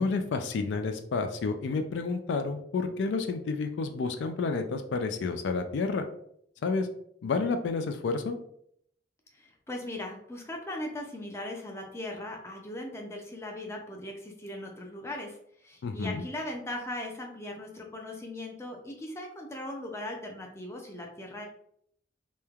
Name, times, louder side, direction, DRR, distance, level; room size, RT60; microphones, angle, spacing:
voice 1, 0.0-6.1 6.6-6.9 7.2-8.4 15.8-16.2, left 4 dB, 85° left, 7 dB, 0.3 m, -30 dB
voice 2, 9.3-15.4 15.6-21.4, left 1 dB, 15° left, 1 dB, 0.4 m, -39 dB
3.0 x 2.1 x 2.3 m, 0.69 s
head